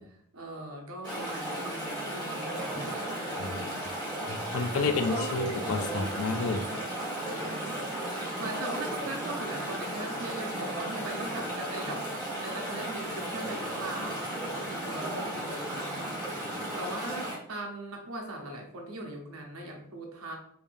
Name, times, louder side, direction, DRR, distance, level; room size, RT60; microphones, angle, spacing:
voice 1, 0.0-3.4 4.8-5.4 6.2-6.9 7.2-7.9 8.4-12.1 12.3-20.4, right 1 dB, 70° right, 1 dB, 0.9 m, -40 dB
Chatter / Stream, 1.0-17.4, right 1 dB, 5° left, 1.5 m, -35 dB
voice 2, 3.4-3.8 4.3-6.6, left 3 dB, 65° left, 7 dB, 0.4 m, -30 dB
3.4 x 3.3 x 2.6 m, 0.65 s
head